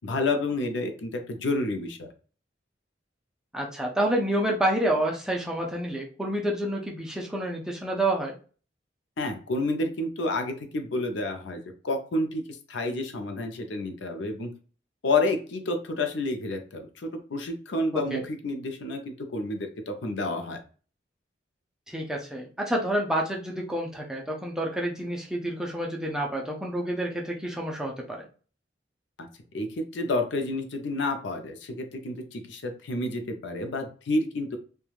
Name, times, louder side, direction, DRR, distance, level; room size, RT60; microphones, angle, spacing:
voice 1, 0.0-2.1 9.2-14.5 15.0-20.6 29.2-29.3 29.5-34.6, left 2 dB, 75° left, 6 dB, 0.5 m, -30 dB
voice 2, 3.5-8.4 17.9-18.2 21.9-28.3, right 1 dB, 5° right, -1 dB, 0.4 m, -28 dB
3.1 x 2.2 x 2.4 m, 0.38 s
head